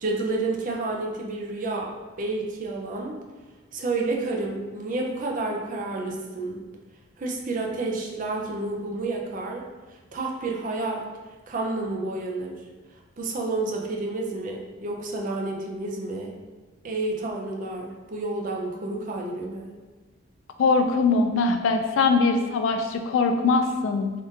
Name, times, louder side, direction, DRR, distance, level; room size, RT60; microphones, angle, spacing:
voice 1, 0.0-1.9 2.2-3.2 3.7-6.6 7.2-9.6 10.1-11.1 11.5-12.6 13.2-16.3 16.8-19.7, right 2 dB, 45° right, 0 dB, 0.4 m, -30 dB
voice 2, 20.6-24.1, left 4 dB, 85° left, 6 dB, 0.3 m, -22 dB
3.6 x 2.5 x 2.6 m, 1.3 s
head